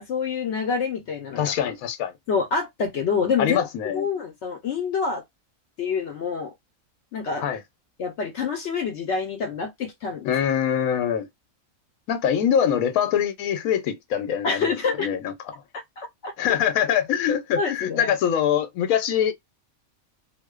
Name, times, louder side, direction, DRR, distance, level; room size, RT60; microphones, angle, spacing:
voice 1, 0.1-1.5 2.3-3.6 3.9-5.2 5.8-6.5 7.1-7.4 8.0-10.3 14.4-15.1 15.7-16.3 17.6-18.1, left 5 dB, 65° left, 0.8 m, -27 dB
voice 2, 1.3-2.1 3.4-4.1 7.4-7.6 10.2-11.3 12.1-15.3 16.4-19.3, left 9 dB, 90° left, 1.0 m, -24 dB
2.6 x 2.1 x 2.2 m
omnidirectional pair, 1.4 m